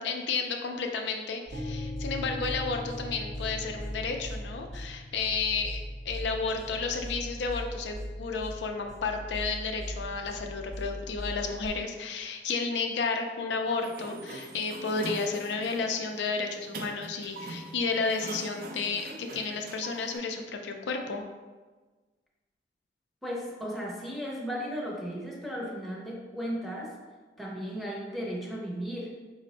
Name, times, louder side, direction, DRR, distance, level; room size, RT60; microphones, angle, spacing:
voice 1, 0.0-21.2, left 4 dB, 80° left, 4 dB, 0.4 m, -32 dB
sound 1, 1.5-11.7, equal, 40° left, 0.6 m, -40 dB
sound 2, 1.5-9.4, left 2 dB, 85° right, 0.7 m, -43 dB
Sliding door, 13.7-20.2, right 2 dB, 50° right, 0.3 m, -43 dB
voice 2, 23.2-27.0 27.4-29.1, equal, ahead, -4 dB, 0.6 m, -35 dB
4.2 x 2.1 x 3.9 m, 1.3 s
head